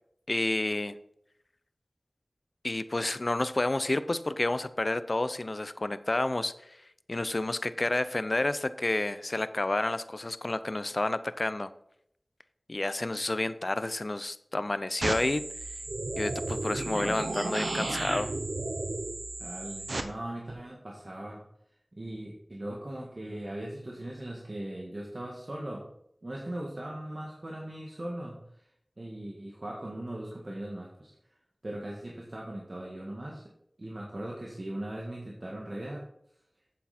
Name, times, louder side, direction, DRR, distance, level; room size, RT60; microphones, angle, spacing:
voice 1, 0.3-0.9 2.6-6.5 7.1-11.7 12.7-15.4 16.2-18.3, left 2 dB, 55° left, 14 dB, 0.5 m, -30 dB
sound 1, 15.0-20.0, right 2 dB, 85° right, 0.8 m, -33 dB
voice 2, 19.4-21.4 22.0-25.9 26.2-28.7 29.0-31.1 31.6-33.5 33.8-36.0, right 1 dB, 55° right, -3 dB, 1.7 m, -39 dB
8.6 x 7.6 x 4.2 m, 0.75 s
wide cardioid pair, 45°, 0 cm